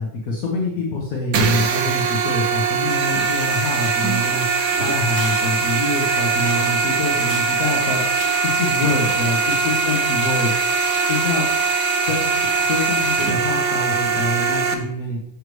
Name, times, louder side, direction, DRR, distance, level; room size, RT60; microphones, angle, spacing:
voice 1, 0.0-4.5 4.8-8.0 8.4-10.5 11.1-11.4 12.1-15.3, left 2 dB, 75° left, -3 dB, 1.7 m, -25 dB
sound 1, 1.3-14.7, right 5 dB, 75° right, 1.1 m, -21 dB
Tearing, 4.3-11.0, left 2 dB, 60° left, 1.8 m, -40 dB
6.6 x 6.6 x 3.2 m, 0.76 s
omnidirectional pair, 1.6 m